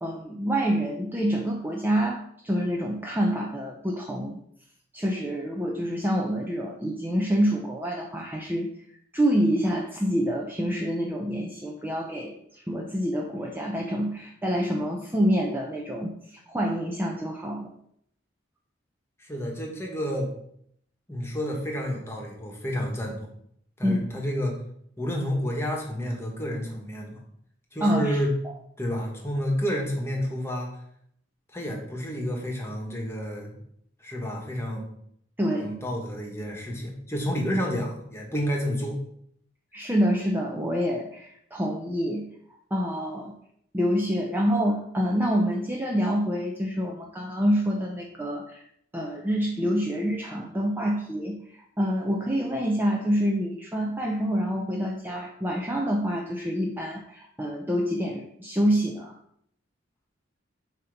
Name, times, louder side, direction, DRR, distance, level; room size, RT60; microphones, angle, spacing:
voice 1, 0.0-4.4 4.9-8.7 9.1-17.7 23.8-24.1 27.8-28.2 35.4-35.8 39.7-42.3 42.7-43.3 43.7-48.6 48.9-59.2, equal, 10° right, -1 dB, 0.5 m, -27 dB
voice 2, 19.2-20.3 21.1-23.3 23.8-24.6 25.0-27.2 27.7-28.3 28.8-30.7 31.5-33.6 34.0-34.8 35.6-39.0, equal, 15° left, 0 dB, 1.3 m, -30 dB
7.4 x 2.9 x 5.2 m, 0.69 s
head